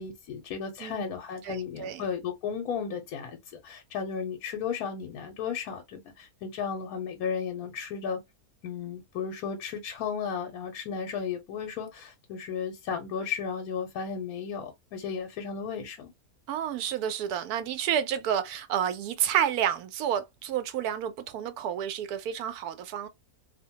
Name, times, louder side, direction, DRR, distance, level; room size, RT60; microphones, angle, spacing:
voice 1, 0.0-8.2 8.6-16.1, left 6 dB, 75° left, 1.1 m, -34 dB
voice 2, 1.4-2.0 16.5-23.1, right 9 dB, 90° right, 1.1 m, -30 dB
2.7 x 2.1 x 2.7 m
omnidirectional pair, 1.6 m